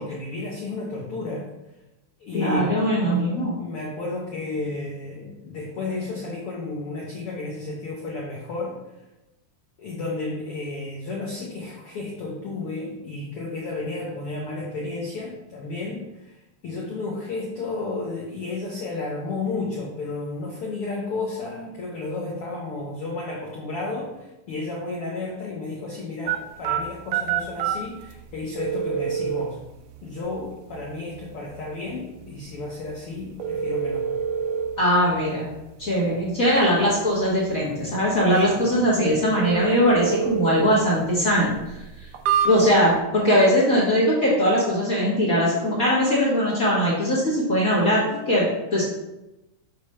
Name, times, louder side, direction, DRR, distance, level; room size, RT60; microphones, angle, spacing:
voice 1, 0.0-1.5 2.2-3.3 3.6-8.8 9.8-16.4 16.6-29.6 30.0-34.1 38.5-38.7, left 3 dB, 85° left, -2 dB, 1.2 m, -32 dB
voice 2, 2.3-3.5 34.8-35.5 35.8-41.8 42.4-48.8, equal, 45° left, -6 dB, 1.1 m, -21 dB
sound 1, 26.3-43.0, right 7 dB, 80° right, 2.4 m, -30 dB
7.0 x 3.3 x 5.4 m, 0.96 s
omnidirectional pair, 3.8 m